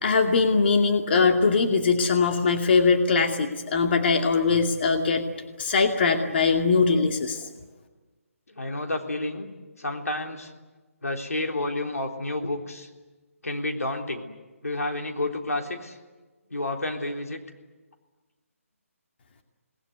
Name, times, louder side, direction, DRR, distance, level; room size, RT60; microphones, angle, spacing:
voice 1, 0.0-5.2 5.6-7.5, left 4 dB, 45° left, 4 dB, 2.4 m, -21 dB
voice 2, 8.5-9.5 9.8-10.5 11.0-12.9 13.4-14.3 14.6-16.0 16.5-17.4, left 2 dB, 85° left, 3 dB, 3.8 m, -30 dB
27.5 x 20.0 x 9.7 m, 1.2 s
figure-of-eight pair, 155°, 8 cm